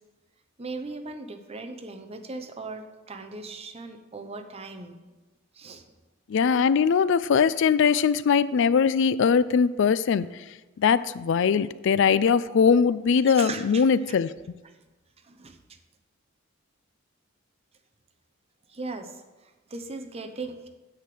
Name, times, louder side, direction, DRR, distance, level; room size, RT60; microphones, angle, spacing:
voice 1, 0.6-5.0 5.5-5.8 13.2-13.8 14.6-14.7 15.2-15.8 18.7-20.7, right 3 dB, 30° right, 6 dB, 0.8 m, -38 dB
voice 2, 6.3-10.3 10.8-14.3, left 6 dB, 60° left, 16 dB, 0.4 m, -21 dB
9.4 x 5.0 x 7.7 m, 1.2 s
head